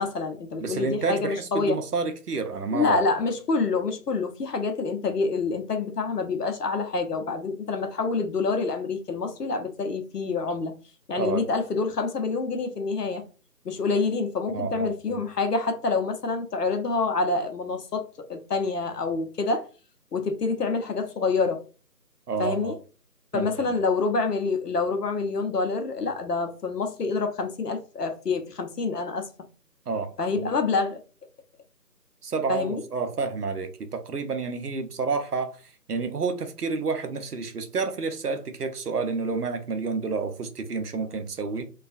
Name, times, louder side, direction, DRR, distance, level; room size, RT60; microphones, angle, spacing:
voice 1, 0.0-1.8 2.7-10.7 11.1-13.2 13.6-19.7 20.1-21.6 22.4-22.8 23.3-29.3 30.2-31.0 32.5-32.8, left 4 dB, 70° left, 0.8 m, -27 dB
voice 2, 0.6-3.1 11.2-11.4 14.5-15.2 22.3-22.8 23.3-23.8 29.9-30.5 32.2-35.6 35.9-41.7, right 4 dB, 65° right, 0.6 m, -29 dB
2.3 x 2.3 x 2.5 m
figure-of-eight pair, 170°, 49 cm